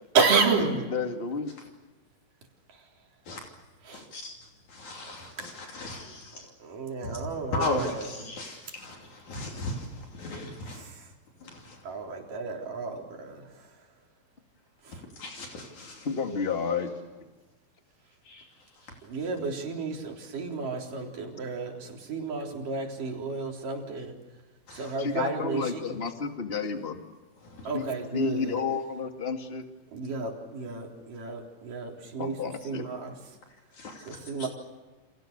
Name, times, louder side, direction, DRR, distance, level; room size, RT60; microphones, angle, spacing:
voice 1, 0.1-0.9 2.7-2.9 3.9-4.1 5.4-5.7 6.6-8.1 10.8-11.1 11.8-13.9 14.8-15.0 19.0-24.2 24.7-26.0 27.7-28.7 29.9-33.2 34.0-34.5, right 4 dB, 80° right, 5.4 m, -31 dB
voice 2, 0.9-1.5 16.0-16.9 25.0-27.0 27.7-27.9 28.1-29.7 32.2-32.9, left 5 dB, 20° left, 1.9 m, -31 dB
voice 3, 3.9-6.5 7.0-10.9 11.4-11.9 14.9-16.1 18.2-19.0 24.7-24.9 27.4-27.7 33.7-34.5, left 2 dB, 65° left, 4.3 m, -37 dB
30.0 x 27.0 x 6.7 m
omnidirectional pair, 3.7 m